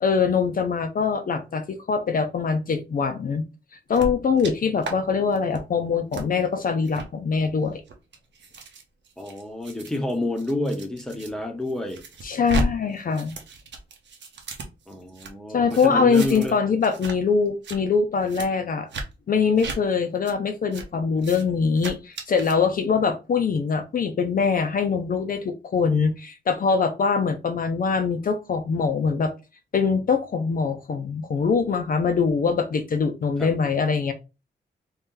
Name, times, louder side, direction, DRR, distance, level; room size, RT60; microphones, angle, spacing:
voice 1, 0.0-3.4 3.9-7.8 12.2-13.4 15.5-18.9 19.3-29.3 29.7-34.1, left 5 dB, 50° left, 0.5 m, -23 dB
sound 1, 3.9-4.5 4.8-4.9 5.3-5.6 6.1-6.3 6.8-7.1 7.7-11.3 11.7-12.7 12.9-15.3 15.7-16.6 16.8-17.1 17.5-17.8 18.3-18.5 18.9-19.1 19.6-19.8 20.2-20.3 20.7-20.9 21.2-21.4 21.8-22.5, right 2 dB, 80° right, 0.8 m, -34 dB
voice 2, 9.2-12.0 14.9-16.6 33.4-33.5, left 1 dB, 5° left, 0.7 m, -29 dB
3.2 x 2.8 x 3.7 m
wide cardioid pair, 135°, 18 cm